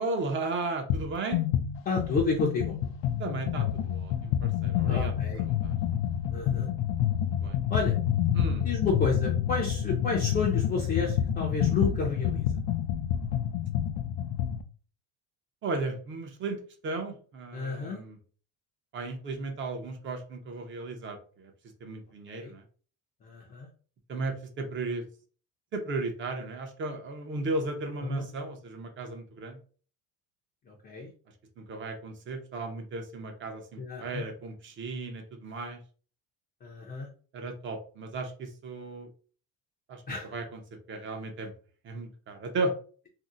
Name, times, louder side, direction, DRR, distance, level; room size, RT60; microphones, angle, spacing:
voice 1, 0.0-1.4 3.2-5.1 5.6-5.8 7.4-7.6 8.3-8.7 15.6-18.2 18.9-21.5 21.8-22.6 24.1-25.0 25.7-29.6 31.6-35.8 37.3-39.1 39.9-40.0 40.3-40.6 40.9-41.5 41.8-42.7, right 3 dB, 35° right, 5 dB, 0.6 m, -35 dB
sound 1, 0.9-1.1 1.3-14.6, left 10 dB, 80° left, 0.5 m, -28 dB
voice 2, 1.9-2.8 4.9-5.4 6.3-6.7 7.7-8.0 8.6-12.6 17.5-18.0 22.3-22.5 23.2-23.7 28.0-28.2 30.7-31.1 33.8-34.3 36.6-37.1 40.1-40.3, left 4 dB, 25° left, -1 dB, 0.5 m, -31 dB
2.7 x 2.0 x 3.7 m, 0.40 s
cardioid pair, 155°, 35 cm